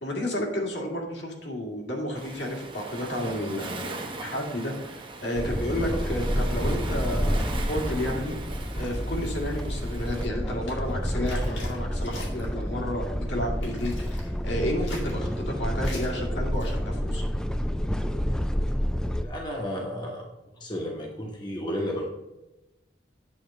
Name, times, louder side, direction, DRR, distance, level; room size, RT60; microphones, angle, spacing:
voice 1, 0.0-8.3 8.7-17.2, equal, 65° left, 0 dB, 2.1 m, -31 dB
Waves surf, 2.2-10.3, right 2 dB, 30° right, 0.8 m, -39 dB
sound 1, 5.4-19.2, equal, 5° left, 0.3 m, -29 dB
sound 2, 8.8-12.7 13.0-14.3 14.7-15.3 15.8-16.1 16.5-16.8, left 1 dB, 85° left, 2.4 m, -44 dB
voice 2, 19.2-20.3 20.6-22.0, equal, 25° left, 0 dB, 1.0 m, -32 dB
8.5 x 3.8 x 6.4 m, 1.0 s
head